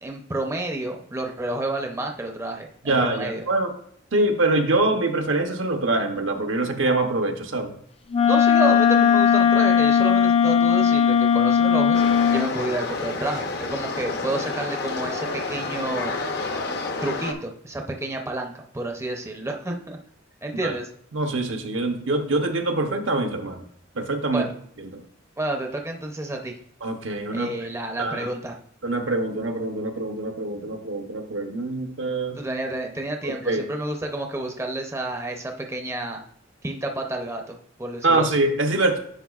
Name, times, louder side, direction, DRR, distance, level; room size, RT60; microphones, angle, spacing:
voice 1, 0.0-3.5 8.3-12.0 12.3-16.2 17.0-20.0 20.4-20.9 24.3-24.5 25.4-26.6 27.3-28.6 32.3-36.2 36.6-38.3, right 2 dB, 15° right, 2 dB, 0.6 m, -30 dB
voice 2, 2.8-3.7 4.1-7.7 20.6-20.7 21.1-23.6 24.0-24.5 24.8-25.0 26.8-27.5 28.0-28.3 28.8-32.4 33.2-33.6 38.0-39.0, right 2 dB, 75° right, 4 dB, 0.8 m, -24 dB
Wind instrument woodwind instrument, 8.1-12.5, left 8 dB, 30° left, 0.4 m, -18 dB
sound 1, 11.9-17.3, left 3 dB, 55° left, 0.7 m, -29 dB
10.0 x 5.0 x 2.4 m, 0.66 s
head